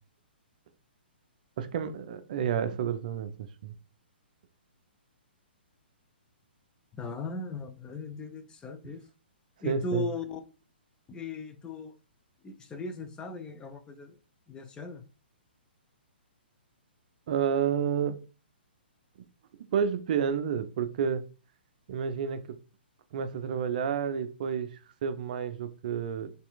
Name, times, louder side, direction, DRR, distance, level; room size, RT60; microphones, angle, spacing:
voice 1, 1.6-3.3 3.6-3.7 9.6-10.1 17.3-18.2 19.7-21.2 21.9-22.4 23.1-26.3, right 7 dB, 50° right, 0.5 m, -30 dB
voice 2, 7.0-9.0 9.6-10.4 11.1-11.9 12.4-14.2 14.5-15.1, left 3 dB, 15° left, 0.4 m, -38 dB
4.3 x 3.3 x 2.3 m
figure-of-eight pair, 125°, 6 cm